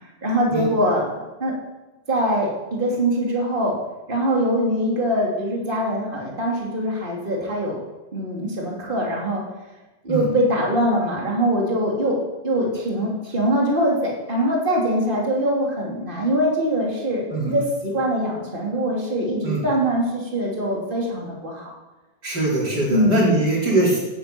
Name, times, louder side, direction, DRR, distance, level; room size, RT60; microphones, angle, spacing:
voice 1, 0.2-1.0 1.4-1.6 2.1-3.7 4.1-7.8 8.1-9.4 10.0-12.2 12.4-21.7 22.9-23.2, equal, 30° right, -2 dB, 3.4 m, -23 dB
voice 2, 22.2-24.0, right 2 dB, 85° right, -4 dB, 5.4 m, -21 dB
17.0 x 11.0 x 7.1 m, 1.1 s
omnidirectional pair, 1.8 m